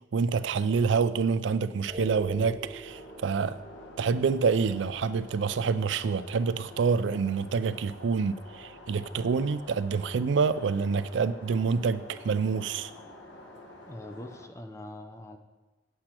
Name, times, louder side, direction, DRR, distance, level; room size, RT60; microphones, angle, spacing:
voice 1, 0.1-3.6 4.0-12.9, right 5 dB, 80° right, 14 dB, 0.4 m, -27 dB
sound 1, 1.9-12.1, right 1 dB, 25° right, 2.3 m, -48 dB
sound 2, 2.8-14.5, left 2 dB, 90° left, 1.1 m, -48 dB
voice 2, 13.9-15.4, left 1 dB, 15° left, 6 dB, 0.6 m, -43 dB
8.7 x 7.9 x 4.4 m, 1.1 s
head